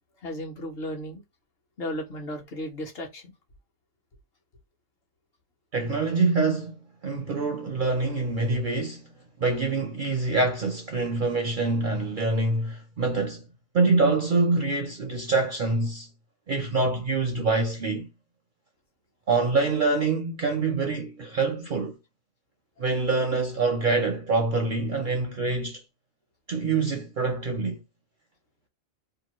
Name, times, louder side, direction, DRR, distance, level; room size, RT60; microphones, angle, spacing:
voice 1, 0.2-1.2 1.8-3.3, equal, 55° left, 1.1 m, -34 dB
voice 2, 5.7-6.7 7.0-9.0 9.4-13.4 13.7-16.1 16.5-18.1 19.3-22.0 22.8-25.8 26.5-27.8, right 3 dB, 60° right, 0.5 m, -25 dB
2.9 x 2.3 x 2.8 m
omnidirectional pair, 1.3 m